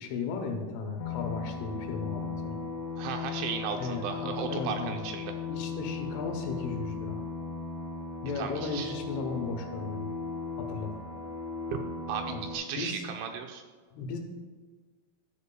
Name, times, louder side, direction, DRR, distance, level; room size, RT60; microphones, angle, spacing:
voice 1, 0.0-2.6 3.7-5.0 5.5-7.2 8.2-10.1 10.6-10.9 12.3-12.4 12.8-13.0 13.9-14.2, left 4 dB, 80° left, 4 dB, 3.4 m, -35 dB
sound 1, 1.0-12.6, left 5 dB, 60° left, 2.4 m, -37 dB
voice 2, 3.0-5.3 8.4-8.9 12.1-13.6, right 7 dB, 80° right, 4 dB, 2.8 m, -35 dB
13.0 x 8.4 x 2.3 m, 1.4 s
omnidirectional pair, 5.7 m